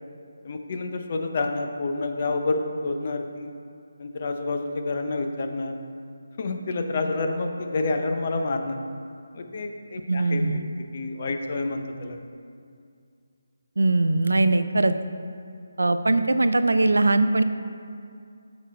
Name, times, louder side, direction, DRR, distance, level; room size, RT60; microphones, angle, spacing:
voice 1, 0.4-3.5 4.0-5.8 6.4-8.8 9.3-12.2, left 3 dB, 40° left, 5 dB, 0.7 m, -29 dB
voice 2, 10.1-10.6 13.8-14.9 15.8-17.4, right 2 dB, 90° right, 10 dB, 0.4 m, -21 dB
7.0 x 6.3 x 4.5 m, 2.3 s
figure-of-eight pair, 165°, 0 cm